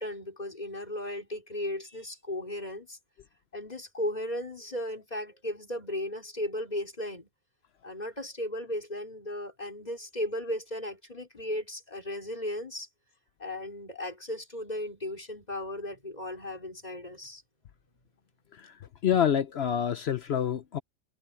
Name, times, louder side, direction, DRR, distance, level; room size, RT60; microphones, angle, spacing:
voice 1, 0.0-3.0 3.5-7.3 7.8-12.9 13.4-17.4, left 1 dB, 30° left, 3.3 m, -36 dB
voice 2, 19.0-20.8, left 9 dB, 55° left, 0.8 m, -27 dB
omnidirectional pair, 1.5 m